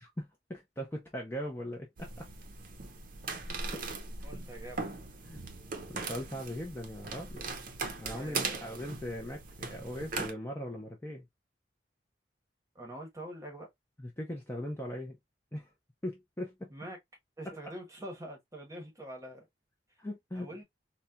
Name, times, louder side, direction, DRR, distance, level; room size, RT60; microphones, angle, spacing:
voice 1, 0.0-2.3 3.5-3.8 4.2-4.3 5.2-5.4 5.9-7.5 8.0-11.2 14.0-15.2 15.5-15.7 16.0-16.7 17.5-17.7 20.0-20.5, equal, 15° left, 0.6 m, -40 dB
Sneaking on wooden floor, 2.0-10.3, right 4 dB, 50° right, 0.6 m, -39 dB
voice 2, 4.2-4.8 8.1-8.6 12.7-13.7 16.7-17.0 17.4-19.5 20.3-20.6, right 1 dB, 15° right, 1.1 m, -44 dB
4.1 x 2.2 x 2.2 m
head